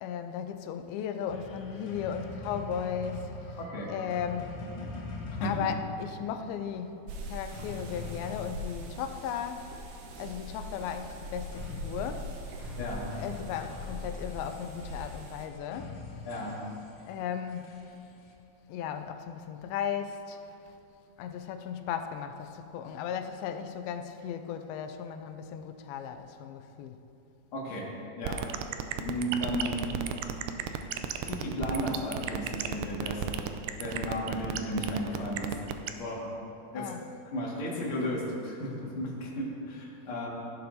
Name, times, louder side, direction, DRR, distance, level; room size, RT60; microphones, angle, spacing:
voice 1, 0.0-3.6 3.9-4.6 5.4-6.9 7.3-9.7 10.2-12.3 13.2-16.0 17.1-17.8 18.7-20.6 21.2-27.1 36.8-37.0, left 8 dB, 90° left, 7 dB, 2.5 m, -36 dB
sound 1, 1.3-9.7 11.5-18.3, left 4 dB, 65° left, 1.7 m, -43 dB
sound 2, 7.1-15.5, equal, 70° right, 2.4 m, -42 dB
voice 2, 12.8-13.1 16.3-16.6 27.5-27.8 28.2-28.4 29.0-29.9 31.2-33.3 33.8-35.5 36.0-36.2 36.7-36.9 37.3-40.3, equal, 45° left, -5 dB, 2.2 m, -34 dB
sound 3, 28.2-35.9, right 11 dB, 85° right, 1.9 m, -32 dB
15.0 x 11.0 x 2.7 m, 2.8 s
omnidirectional pair, 4.2 m